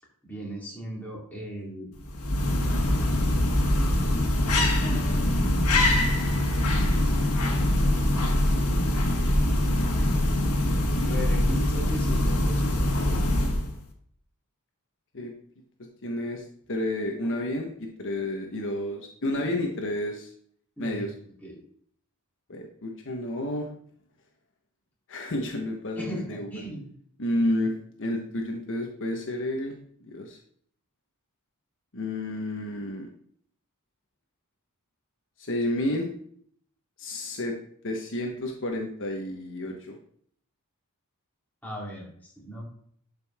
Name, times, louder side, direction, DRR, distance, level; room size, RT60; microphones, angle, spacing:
voice 1, 0.2-1.9 4.8-5.2 5.7-7.4 11.0-12.7 19.3-19.5 20.8-21.6 26.0-26.9 41.6-42.6, right 1 dB, 10° left, -5 dB, 3.3 m, -38 dB
sound 1, 2.0-13.8, left 1 dB, 85° left, 1.6 m, -23 dB
voice 2, 16.0-20.3 20.8-21.1 22.5-23.7 25.1-26.5 27.2-29.7 30.0-30.4 31.9-33.1 35.4-36.1 37.0-37.6 37.8-40.0, left 1 dB, 60° left, 2 dB, 1.2 m, -30 dB
11.5 x 5.4 x 3.6 m, 0.62 s
head